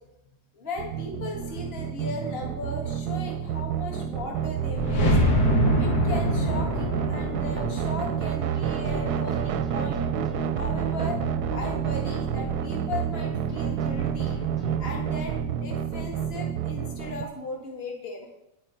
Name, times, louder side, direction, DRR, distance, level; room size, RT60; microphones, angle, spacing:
voice 1, 0.5-5.2 5.7-10.0 10.5-11.2 11.5-14.4 14.8-18.3, left 2 dB, 35° left, -1 dB, 1.9 m, -37 dB
sound 1, 0.8-17.2, right 8 dB, 70° right, 1.1 m, -29 dB
sound 2, 4.5-9.4, equal, 60° left, 2.1 m, -25 dB
sound 3, 5.4-8.2 8.5-13.2 13.5-15.3, right 3 dB, 85° left, 4.8 m, -39 dB
9.9 x 9.6 x 4.4 m, 0.83 s
omnidirectional pair, 2.0 m